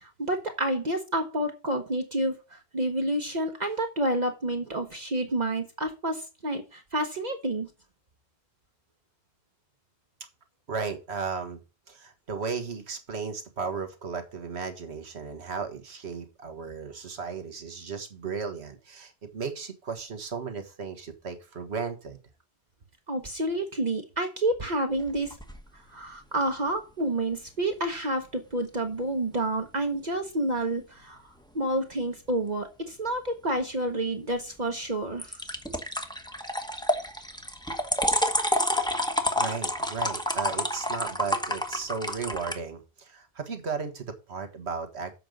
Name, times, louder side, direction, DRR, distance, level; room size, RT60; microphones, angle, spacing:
voice 1, 0.0-7.7 23.1-25.4 25.9-31.2 31.5-35.4, right 1 dB, 45° right, 1.1 m, -29 dB
voice 2, 10.7-11.6 11.9-22.2 39.4-45.1, right 5 dB, 85° right, 1.7 m, -35 dB
sound 1, 24.9-25.6 35.2-42.6, left 1 dB, 5° left, 1.1 m, -29 dB
7.8 x 5.3 x 6.3 m
omnidirectional pair, 1.1 m